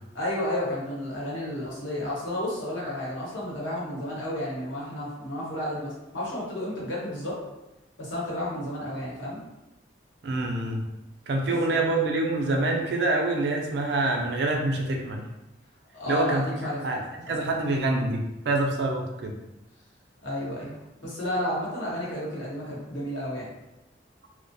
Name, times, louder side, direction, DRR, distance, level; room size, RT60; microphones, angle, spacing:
voice 1, 0.1-7.4 8.0-9.4 11.4-11.8 15.9-16.8 17.3-17.6 20.2-23.5, left 1 dB, 85° left, -6 dB, 0.9 m, -32 dB
voice 2, 10.2-10.8 11.3-15.2 16.1-16.4 16.8-17.0 17.3-19.4, right 2 dB, 60° right, 2 dB, 0.4 m, -26 dB
2.3 x 2.1 x 2.6 m, 0.95 s
head